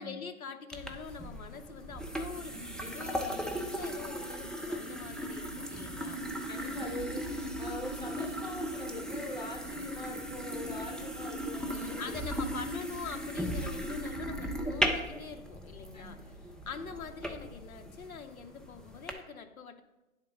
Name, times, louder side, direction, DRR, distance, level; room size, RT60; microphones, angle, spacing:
voice 1, 0.0-6.2 11.7-16.2 16.7-19.8, left 5 dB, 75° left, 7 dB, 0.8 m, -44 dB
sound 1, 0.7-19.1, equal, ahead, 0.3 m, -37 dB
voice 2, 6.5-7.3 7.6-12.2 15.9-16.2, left 1 dB, 30° left, 1 dB, 0.7 m, -42 dB
9.6 x 3.7 x 5.2 m, 1.0 s
hypercardioid pair, 180°, 42 cm